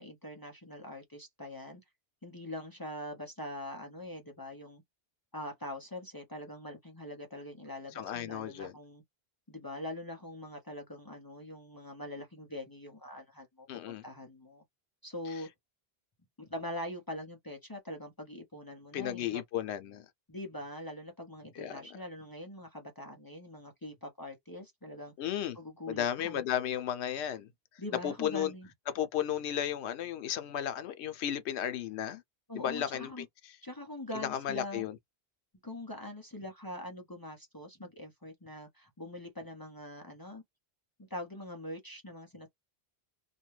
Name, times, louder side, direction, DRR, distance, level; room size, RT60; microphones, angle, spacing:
voice 1, 0.0-1.8 2.2-4.8 5.3-9.0 9.5-14.6 15.0-15.5 16.4-19.4 20.3-25.1 25.5-26.4 27.8-28.7 32.5-33.3 33.6-34.9 35.6-40.4 41.0-42.5, left 1 dB, 25° left, 0.6 m, -43 dB
voice 2, 7.9-8.7 13.7-14.0 18.9-20.0 21.6-21.9 25.2-25.6 25.9-27.5 28.0-28.5 28.9-32.2 32.5-33.2 34.1-34.9, left 10 dB, 85° left, 0.9 m, -34 dB
2.5 x 2.2 x 3.1 m
omnidirectional pair, 1.1 m